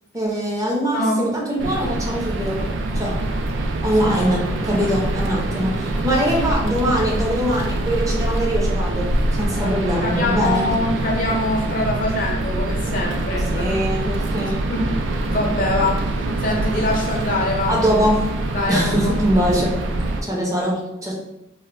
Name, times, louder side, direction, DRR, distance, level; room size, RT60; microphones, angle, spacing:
voice 1, 0.1-2.7 2.9-3.1 3.8-9.0 9.3-10.7 13.5-14.6 17.7-18.2 18.7-19.7 20.2-21.1, equal, 20° right, -4 dB, 0.5 m, -22 dB
sound 1, 1.6-20.2, right 2 dB, 85° right, 0.3 m, -24 dB
voice 2, 9.6-13.7 14.7-14.9 15.2-16.0 16.4-17.7 18.5-19.1, left 2 dB, 45° left, -1 dB, 0.5 m, -24 dB
2.1 x 2.1 x 3.6 m, 0.89 s
head